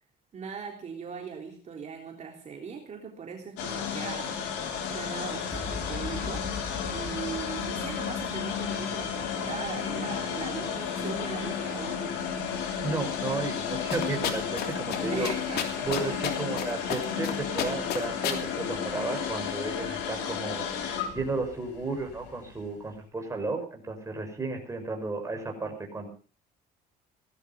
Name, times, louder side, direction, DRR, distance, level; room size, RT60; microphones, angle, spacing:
voice 1, 0.3-4.3 4.9-6.5 6.9-12.3 15.1-16.2, right 6 dB, 45° right, 1 dB, 3.6 m, -40 dB
sound 1, 3.6-22.7, left 7 dB, 90° left, 5.5 m, -33 dB
sound 2, 5.5-12.2, left 4 dB, 20° left, 4.6 m, -42 dB
voice 2, 12.8-15.3 15.8-26.1, right 3 dB, 20° right, 3 dB, 6.1 m, -33 dB
sound 3, 13.9-14.7 14.9-15.0 15.2-16.6 16.9-17.3 17.6-18.4, left 10 dB, 70° left, 3.1 m, -30 dB
18.0 x 13.0 x 5.5 m, 0.41 s
cardioid pair, 110°, 17 cm